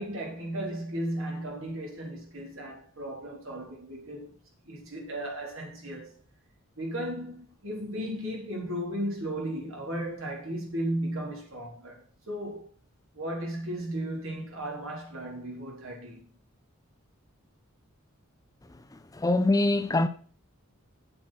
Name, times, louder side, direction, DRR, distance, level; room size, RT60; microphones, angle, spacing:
voice 1, 0.0-4.3 4.7-6.1 6.8-12.7 13.1-16.2, right 1 dB, 70° right, 3.9 m, -35 dB
voice 2, 18.9-20.1, left 2 dB, 15° left, 0.4 m, -24 dB
8.0 x 7.7 x 5.9 m
head